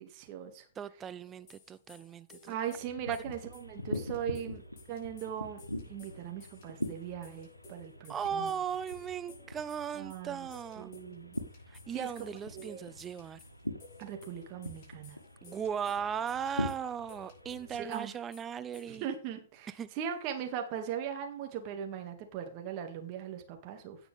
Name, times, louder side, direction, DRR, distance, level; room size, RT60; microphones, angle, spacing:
voice 1, 0.0-0.7 2.5-8.6 9.9-10.5 10.8-11.4 11.9-12.1 12.5-13.0 14.0-15.2 17.8-18.1 18.9-24.0, right 9 dB, 35° right, 4 dB, 2.1 m, -39 dB
voice 2, 0.8-2.5 3.1-3.2 8.1-10.9 11.7-13.4 15.4-19.1 19.8-19.9, right 8 dB, 15° right, 15 dB, 0.4 m, -37 dB
sound 1, 1.2-19.1, left 3 dB, 30° left, 5.1 m, -57 dB
sound 2, 2.7-17.8, left 1 dB, 85° left, 1.4 m, -43 dB
17.0 x 5.9 x 3.5 m, 0.41 s
figure-of-eight pair, 115°, 0 cm